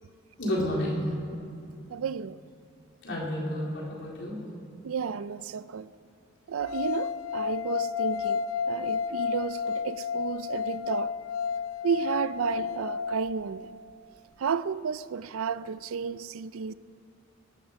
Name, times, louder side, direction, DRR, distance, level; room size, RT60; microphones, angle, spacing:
voice 1, 0.4-1.0 3.0-4.4, left 1 dB, 60° left, 4.0 m, -30 dB
voice 2, 1.9-2.4 4.8-5.9 6.5-8.4 8.7-11.1 11.8-13.7 14.4-16.7, right 6 dB, 80° right, 0.4 m, -32 dB
sound 1, 6.6-13.8, left 7 dB, 80° left, 0.6 m, -31 dB
23.5 x 11.5 x 5.3 m
head